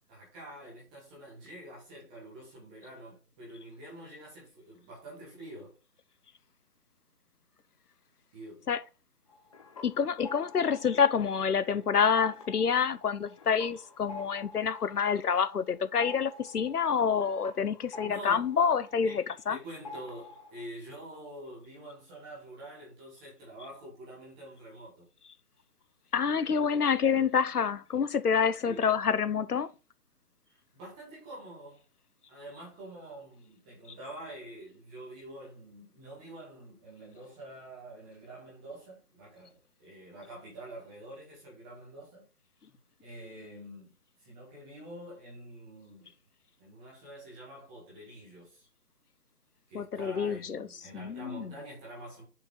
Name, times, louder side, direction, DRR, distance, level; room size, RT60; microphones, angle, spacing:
voice 1, 0.0-5.7 8.3-8.7 18.0-18.7 19.0-25.1 28.6-28.9 30.5-31.8 32.3-42.3 42.7-43.9 44.2-46.1 46.6-48.7 49.7-52.2, right 1 dB, 5° right, 0.8 m, -47 dB
sound 1, 9.3-11.7 12.0-19.5 19.8-20.7, left 3 dB, 25° left, 0.9 m, -48 dB
voice 2, 9.8-19.6 26.1-29.7 49.7-50.7 50.9-51.5, left 6 dB, 80° left, 0.9 m, -27 dB
6.9 x 4.9 x 4.4 m
figure-of-eight pair, 150°, 46 cm